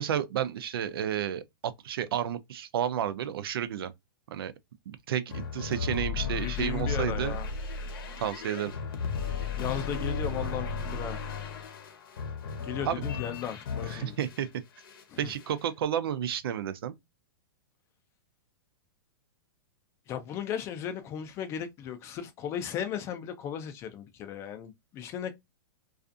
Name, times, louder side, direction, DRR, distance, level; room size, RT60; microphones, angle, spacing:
voice 1, 0.0-1.4 1.8-3.9 4.3-4.5 4.9-7.4 8.2-8.7 12.8-13.0 13.9-14.5 15.2-17.0, right 10 dB, 70° right, 0.5 m, -31 dB
sound 1, 5.3-14.5 14.8-15.6, left 5 dB, 70° left, 0.8 m, -35 dB
voice 2, 6.4-7.5 9.6-11.2 12.6-14.2 15.1-15.3 20.1-25.3, left 9 dB, 20° left, 0.4 m, -36 dB
2.4 x 2.4 x 2.4 m
hypercardioid pair, 155°, 13 cm